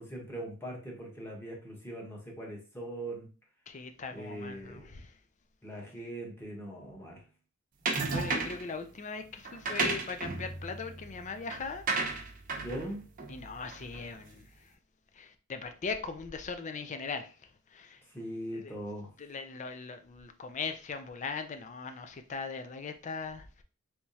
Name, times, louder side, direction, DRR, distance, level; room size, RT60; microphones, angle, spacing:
voice 1, 0.0-3.3 4.1-4.9 5.6-7.2 12.6-13.0 18.1-19.1, right 1 dB, 10° left, 1.0 m, -41 dB
voice 2, 3.7-5.1 8.1-11.8 13.3-14.4 15.2-17.3 17.7-18.0 18.5-18.7 19.2-23.6, left 4 dB, 35° left, 0.4 m, -39 dB
sound 1, 7.9-8.7 9.4-14.1, right 3 dB, 40° right, 0.7 m, -34 dB
3.4 x 3.0 x 2.8 m
head